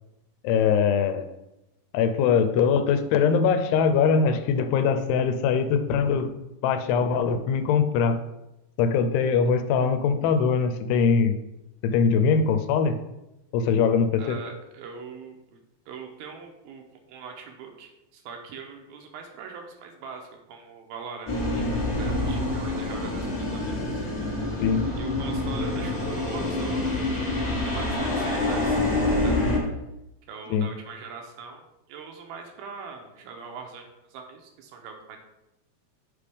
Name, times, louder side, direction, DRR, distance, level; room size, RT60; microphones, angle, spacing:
voice 1, 0.4-1.2 1.9-6.3 6.6-8.2 8.8-11.4 11.8-13.0 13.5-14.4 24.6-24.8 30.5-30.7, left 6 dB, 85° left, 9 dB, 2.7 m, -22 dB
voice 2, 14.2-15.6 15.9-24.0 25.0-27.2 27.6-28.8 29.2-29.4 30.3-35.2, right 5 dB, 75° right, 3 dB, 2.4 m, -42 dB
sound 1, 21.3-29.6, left 2 dB, 45° left, 1.1 m, -26 dB
8.2 x 5.0 x 3.5 m, 0.92 s
omnidirectional pair, 4.6 m